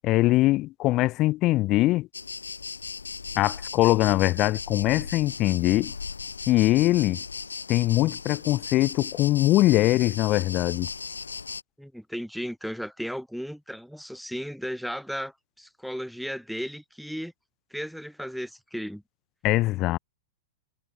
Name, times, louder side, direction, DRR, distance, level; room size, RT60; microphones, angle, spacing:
voice 1, 0.0-2.1 3.4-5.9 6.5-7.2 7.7-10.9 19.4-20.0, left 17 dB, 35° left, 0.8 m, -22 dB
sound 1, 2.1-11.6, left 5 dB, 75° left, 1.7 m, -37 dB
voice 2, 11.8-17.3 17.7-19.0, equal, ahead, 1.9 m, -35 dB
figure-of-eight pair, 100°, 0 cm